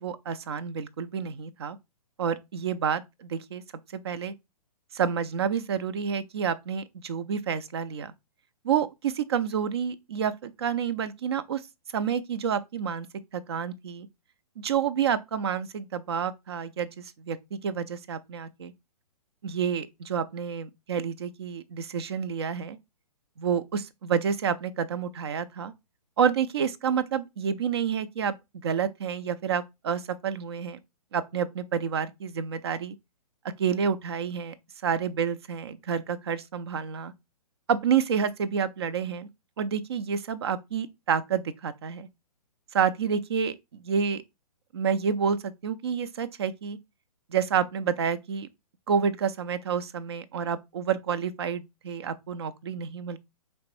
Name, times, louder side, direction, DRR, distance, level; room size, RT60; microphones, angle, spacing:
voice 1, 0.0-1.8 2.2-3.6 3.9-4.3 4.9-8.1 8.6-11.6 11.9-13.1 13.3-14.1 14.6-18.7 19.4-22.8 23.4-25.7 26.2-28.3 28.6-30.8 31.1-33.0 33.6-34.5 34.8-37.1 37.7-39.3 39.6-42.1 42.7-44.2 44.7-46.8 47.3-48.5 48.9-53.2, right 7 dB, 40° right, 0.4 m, -29 dB
4.1 x 3.0 x 3.0 m
figure-of-eight pair, 125°, 20 cm